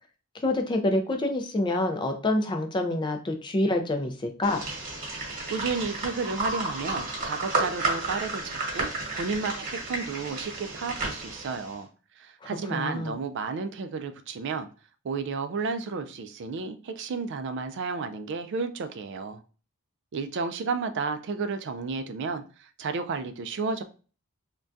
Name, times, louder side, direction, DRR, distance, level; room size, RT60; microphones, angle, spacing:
voice 1, 0.4-4.6 12.7-13.2, left 1 dB, 20° left, 0.4 m, -27 dB
sound 1, 4.4-11.7, right 2 dB, 40° right, 1.1 m, -32 dB
voice 2, 5.5-11.9 12.2-14.7 15.0-19.4 20.1-23.8, right 4 dB, 55° right, 0.3 m, -32 dB
3.4 x 2.2 x 2.5 m
head